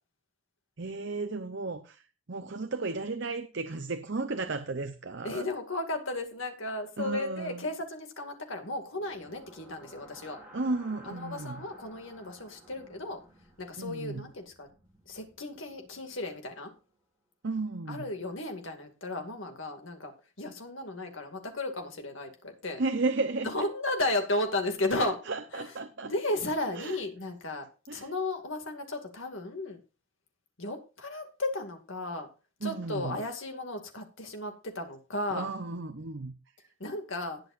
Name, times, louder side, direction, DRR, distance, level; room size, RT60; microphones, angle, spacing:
voice 1, 0.8-2.0 2.3-5.5 7.0-7.6 10.5-11.6 13.8-14.3 17.4-18.1 22.8-23.7 25.0-26.1 26.7-27.0 27.9-28.1 32.6-33.2 35.3-36.3, right 3 dB, 55° right, 0.8 m, -34 dB
voice 2, 5.2-10.4 11.1-13.2 13.6-14.7 15.1-16.7 17.9-20.1 20.4-22.8 23.4-25.2 25.5-25.6 26.0-27.6 27.9-29.8 30.6-32.3 32.6-35.5 36.8-37.4, left 2 dB, 65° left, 2.3 m, -34 dB
sound 1, 8.9-16.9, right 1 dB, 10° right, 4.5 m, -55 dB
19.0 x 7.8 x 2.6 m
head